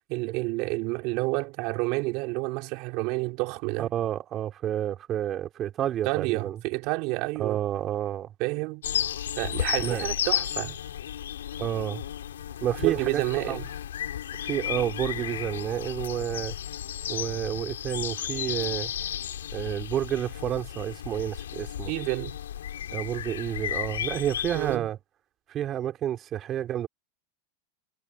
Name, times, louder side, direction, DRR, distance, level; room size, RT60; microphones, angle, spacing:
voice 1, 0.1-3.9 6.1-7.6 8.4-8.8 9.4-10.8 12.8-13.7 21.9-22.4 24.5-24.9, right 26 dB, 50° right, 3.6 m, -29 dB
voice 2, 3.8-6.6 7.4-8.3 9.5-10.0 11.6-12.0 12.6-13.6 14.4-16.6 17.1-18.9 19.5-21.9 22.9-25.0 25.5-26.9, right 11 dB, 35° right, 3.3 m, -30 dB
sound 1, 8.8-24.8, left 10 dB, 80° left, 2.5 m, -33 dB
hypercardioid pair, 100°, 0 cm